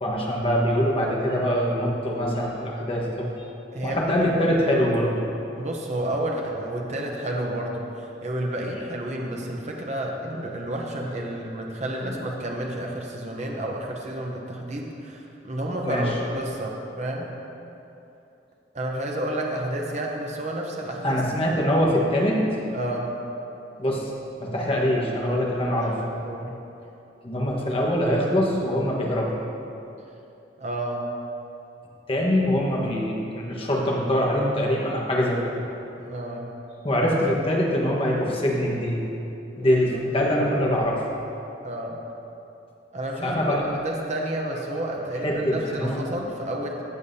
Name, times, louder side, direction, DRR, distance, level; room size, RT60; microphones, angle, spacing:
voice 1, 0.0-3.3 3.8-5.2 12.0-12.1 15.8-16.1 21.0-22.4 23.8-24.1 24.4-26.0 27.2-29.3 32.1-35.5 36.8-39.0 39.6-41.0 43.2-43.8 45.2-46.0, equal, 30° left, -3 dB, 1.3 m, -23 dB
voice 2, 3.7-4.1 5.6-17.3 18.7-21.2 22.7-23.1 25.7-26.5 30.6-31.1 36.0-36.5 39.6-40.0 41.6-42.0 42.9-43.6 43.8-46.8, right 1 dB, 40° right, 0 dB, 0.8 m, -31 dB
15.0 x 7.2 x 2.8 m, 2.8 s
head